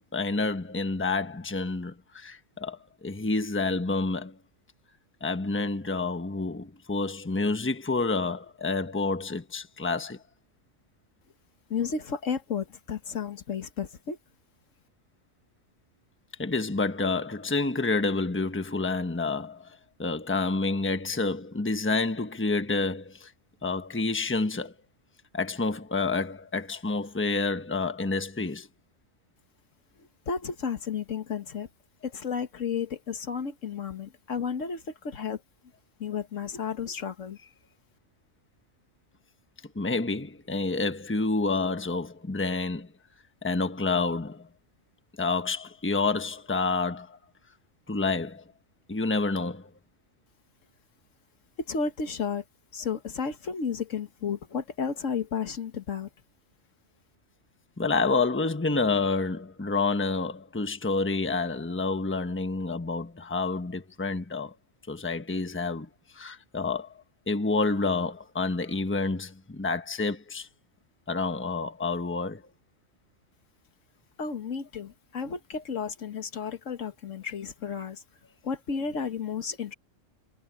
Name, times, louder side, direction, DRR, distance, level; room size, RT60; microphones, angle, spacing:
voice 1, 0.1-4.4 5.2-10.2 16.4-23.3 23.6-24.7 25.3-28.7 39.7-42.9 43.4-44.5 45.2-47.2 47.9-48.4 48.9-49.7 57.8-64.6 64.9-65.9 66.1-70.5 71.1-72.4, left 3 dB, 10° left, 1.1 m, -29 dB
voice 2, 11.7-14.2 30.3-31.7 32.0-35.4 36.0-37.4 51.7-52.4 52.7-56.1 74.2-78.0 78.4-79.7, left 6 dB, 75° left, 1.8 m, -32 dB
omnidirectional pair, 1.3 m